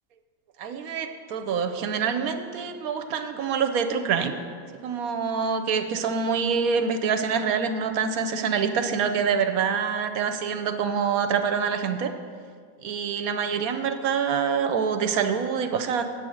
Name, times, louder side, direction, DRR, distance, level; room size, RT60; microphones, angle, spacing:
voice 1, 0.6-4.3 4.8-12.1 12.8-16.0, right 6 dB, 70° right, 8 dB, 1.2 m, -26 dB
9.0 x 7.9 x 6.3 m, 2.1 s
omnidirectional pair, 1.6 m